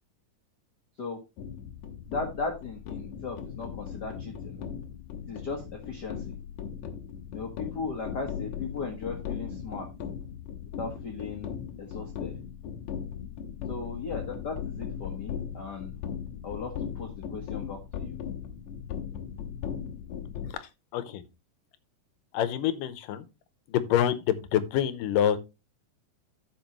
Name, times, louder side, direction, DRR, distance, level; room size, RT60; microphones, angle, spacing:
sound 1, 1.4-20.5, left 8 dB, 65° left, 2.2 m, -38 dB
voice 1, 2.1-4.6 5.3-6.3 7.3-9.9 10.8-12.3 13.7-15.9 16.4-18.3, left 4 dB, 50° left, 1.3 m, -37 dB
voice 2, 20.6-21.2 22.3-23.3 23.7-25.4, left 10 dB, 85° left, 2.4 m, -27 dB
14.5 x 5.2 x 3.0 m
omnidirectional pair, 3.8 m